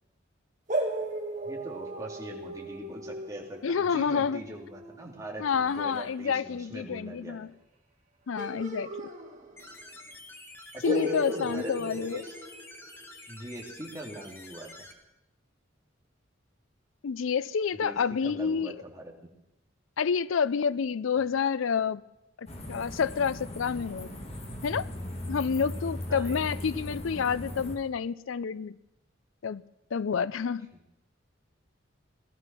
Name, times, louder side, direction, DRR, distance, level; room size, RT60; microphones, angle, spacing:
sound 1, 0.7-6.1 8.4-9.8 10.1-10.2 10.8-13.0, right 1 dB, 40° right, 2.1 m, -36 dB
voice 1, 1.4-7.4 10.7-12.4 13.3-14.9 17.7-18.0 18.2-19.0 25.6-26.6, right 1 dB, 15° right, 2.3 m, -42 dB
voice 2, 3.6-4.4 5.4-7.5 8.3-9.1 10.8-12.2 17.0-18.7 20.0-22.0 22.4-24.1 24.6-24.9 25.3-28.8 29.4-29.6 29.9-30.7, left 6 dB, 80° left, 0.5 m, -29 dB
sound 2, 9.6-14.9, left 1 dB, 10° left, 1.2 m, -48 dB
sound 3, 22.5-27.8, left 1 dB, 30° left, 1.8 m, -38 dB
17.5 x 13.0 x 6.1 m
head